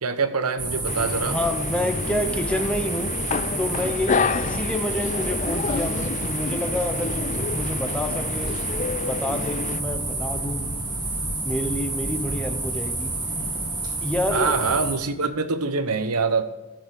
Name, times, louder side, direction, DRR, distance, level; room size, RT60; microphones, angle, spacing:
voice 1, 0.0-1.4 14.3-16.4, right 4 dB, 85° right, 11 dB, 1.0 m, -24 dB
sound 1, 0.6-14.9, right 2 dB, 20° right, 2.5 m, -29 dB
sound 2, 0.9-9.8, left 4 dB, 35° left, 0.4 m, -29 dB
voice 2, 1.2-3.1 3.5-8.5 8.8-10.7 11.4-13.2 14.0-14.5, left 1 dB, 5° left, 6 dB, 1.0 m, -28 dB
13.5 x 7.9 x 6.5 m, 1.0 s
head